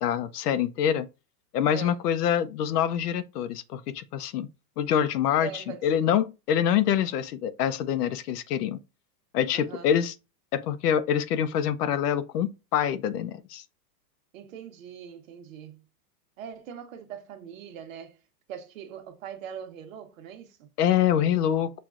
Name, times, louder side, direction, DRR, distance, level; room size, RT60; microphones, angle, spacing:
voice 1, 0.0-1.1 1.5-4.5 4.8-8.8 9.3-10.1 10.5-13.6 20.8-21.7, left 9 dB, 70° left, 0.6 m, -25 dB
voice 2, 5.4-6.1 9.5-9.9 14.3-15.8 16.4-18.2 18.5-20.7, right 8 dB, 50° right, 1.0 m, -41 dB
5.8 x 2.4 x 2.4 m
supercardioid pair, 165°, 50 cm